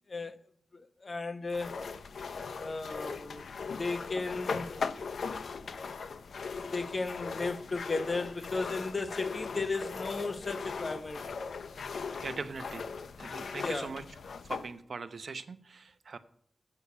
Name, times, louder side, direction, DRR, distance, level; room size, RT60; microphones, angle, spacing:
voice 1, 0.1-0.4 0.7-1.7 2.5-3.5 3.8-4.8 6.5-11.2 13.6-13.9, left 3 dB, 40° left, 1.0 m, -35 dB
sound 1, 1.5-14.7, left 5 dB, 75° left, 0.7 m, -39 dB
voice 2, 12.2-12.9 13.2-14.0 14.4-16.2, right 4 dB, 60° right, 0.9 m, -41 dB
8.7 x 6.5 x 8.2 m
wide cardioid pair, 80°, 0 cm